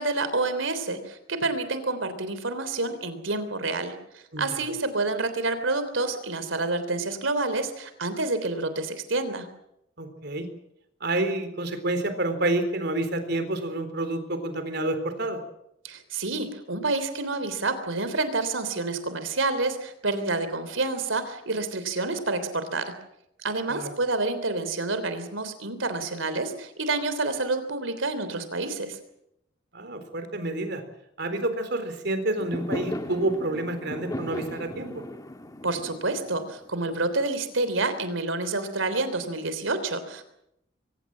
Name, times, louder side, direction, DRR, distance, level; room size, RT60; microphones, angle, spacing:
voice 1, 0.0-9.5 15.8-22.9 23.4-29.0 35.6-40.2, right 3 dB, 85° right, 11 dB, 3.4 m, -28 dB
voice 2, 10.0-10.5 11.0-15.4 23.7-23.9 29.7-30.8 31.2-35.0, right 2 dB, 55° right, 9 dB, 3.9 m, -28 dB
Fireworks, 32.4-37.6, left 1 dB, 20° left, 1.5 m, -36 dB
24.0 x 19.0 x 7.6 m, 0.78 s
head